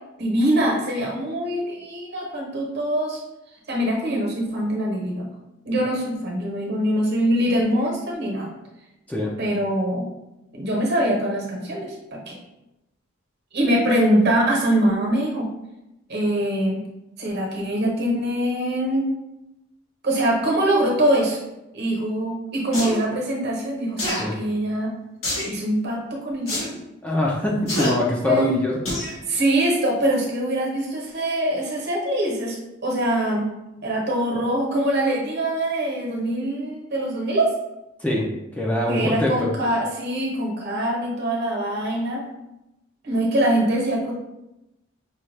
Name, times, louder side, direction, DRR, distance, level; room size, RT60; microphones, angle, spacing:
voice 1, 0.2-3.2 3.7-5.3 5.6-8.5 9.4-10.1 10.5-12.4 13.5-15.5 16.1-16.8 17.2-19.1 20.0-21.4 21.7-24.9 25.4-26.8 28.3-28.6 29.3-32.6 32.8-33.5 33.8-37.5 38.9-42.2 43.0-44.1, right 1 dB, 55° right, -1 dB, 1.1 m, -23 dB
sound 1, 22.7-23.0 24.0-24.2 25.2-25.5 26.5-26.7 27.7-27.9 28.8-29.1 29.6-29.7, left 1 dB, 80° left, 1.5 m, -26 dB
voice 2, 27.0-28.8 38.0-39.5, left 1 dB, 5° left, -4 dB, 0.5 m, -23 dB
5.6 x 2.4 x 3.2 m, 0.93 s
head